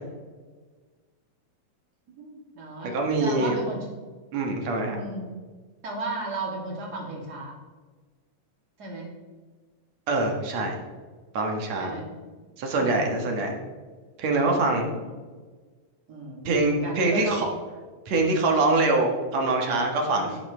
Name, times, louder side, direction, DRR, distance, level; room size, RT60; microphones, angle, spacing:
voice 1, 2.2-3.9 4.9-5.3 5.8-7.5 8.8-9.1 11.8-12.2 12.7-13.2 14.6-15.2 16.1-17.4 20.1-20.4, right 2 dB, 35° right, -2 dB, 3.0 m, -35 dB
voice 2, 2.8-3.6 4.3-5.0 10.1-10.7 11.3-11.9 12.6-13.6 14.2-14.9 16.4-17.5 18.1-20.4, right 2 dB, 65° right, 2 dB, 2.6 m, -24 dB
12.0 x 10.5 x 3.3 m, 1.4 s
omnidirectional pair, 3.4 m